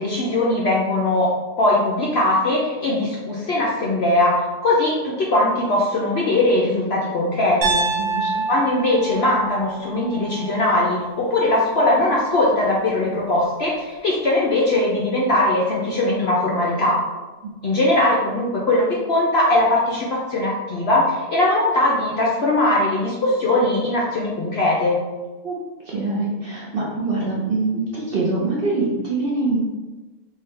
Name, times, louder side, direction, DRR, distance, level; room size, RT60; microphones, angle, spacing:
voice 1, 0.0-1.3 1.6-7.8 8.5-17.0 17.6-25.0, left 2 dB, 60° left, -4 dB, 0.7 m, -20 dB
Piano, 7.6-11.7, right 3 dB, 70° right, 1.1 m, -27 dB
voice 2, 8.0-8.5 17.4-17.5 25.4-25.6 25.9-29.6, right 3 dB, 55° right, -6 dB, 0.7 m, -24 dB
3.6 x 2.6 x 3.3 m, 1.2 s
omnidirectional pair, 1.6 m